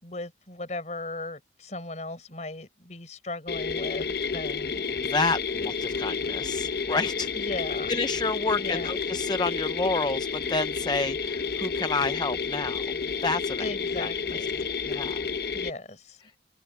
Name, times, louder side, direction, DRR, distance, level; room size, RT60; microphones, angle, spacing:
voice 1, 0.0-4.1 4.3-4.8 7.3-7.9 8.5-8.9 13.6-14.7 15.5-16.2, left 2 dB, 40° left, 4.7 m, -37 dB
sound 1, 3.5-15.7, left 5 dB, 60° left, 0.9 m, -30 dB
voice 2, 4.9-7.3 7.9-12.8 13.2-13.6 14.0-14.1 14.9-15.2, left 3 dB, 25° left, 0.6 m, -29 dB
open air
head